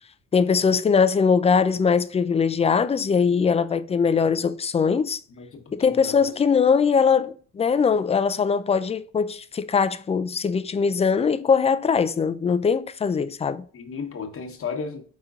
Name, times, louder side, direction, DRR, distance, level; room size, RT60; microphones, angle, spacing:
voice 1, 0.3-5.2 5.7-13.6, left 6 dB, 20° left, 0.3 m, -21 dB
voice 2, 5.4-6.3 13.7-15.0, left 5 dB, 45° left, 1.1 m, -34 dB
5.0 x 4.2 x 2.4 m
cardioid pair, 90°, 30 cm